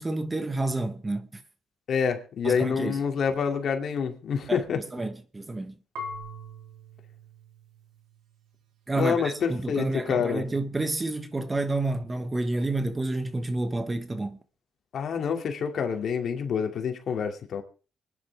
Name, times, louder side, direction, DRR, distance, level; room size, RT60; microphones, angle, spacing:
voice 1, 0.0-1.4 2.4-3.0 4.5-5.7 8.9-14.4, right 2 dB, 20° right, 1.5 m, -29 dB
voice 2, 1.9-4.8 8.9-10.5 14.9-17.6, left 6 dB, 60° left, 2.7 m, -27 dB
Marimba xylophone / Wood, 6.0-8.8, left 1 dB, 90° right, 3.4 m, -42 dB
25.0 x 10.0 x 3.6 m
cardioid pair, 90°, 0 cm